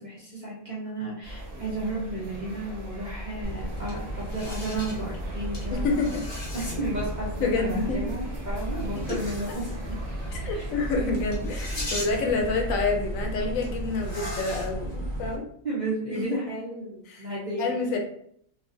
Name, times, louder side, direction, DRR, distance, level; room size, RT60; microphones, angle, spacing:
voice 1, 0.0-6.2 6.5-9.6 10.5-10.7 15.6-17.9, right 2 dB, 40° right, -6 dB, 0.7 m, -33 dB
sound 1, 1.2-12.7, right 1 dB, 60° right, 1.0 m, -40 dB
sound 2, 3.4-15.4, right 1 dB, 25° left, 0.6 m, -34 dB
voice 2, 5.7-6.3 7.4-8.1 9.0-9.2 10.3-15.5 16.1-16.4 17.1-17.3 17.6-18.0, left 3 dB, 75° left, 2 dB, 1.0 m, -28 dB
2.8 x 2.4 x 2.5 m, 0.67 s
omnidirectional pair, 1.4 m